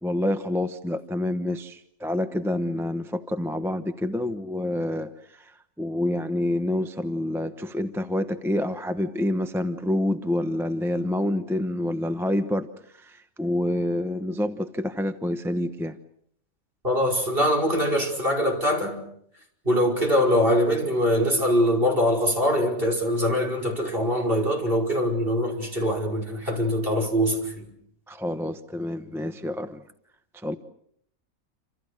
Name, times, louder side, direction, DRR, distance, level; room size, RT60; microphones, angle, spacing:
voice 1, 0.0-16.0 28.1-29.8 30.3-30.6, left 1 dB, ahead, 0.8 m, -28 dB
voice 2, 16.8-19.0 19.7-27.7, equal, 40° right, 5.6 m, -23 dB
28.0 x 27.5 x 6.5 m
omnidirectional pair, 1.5 m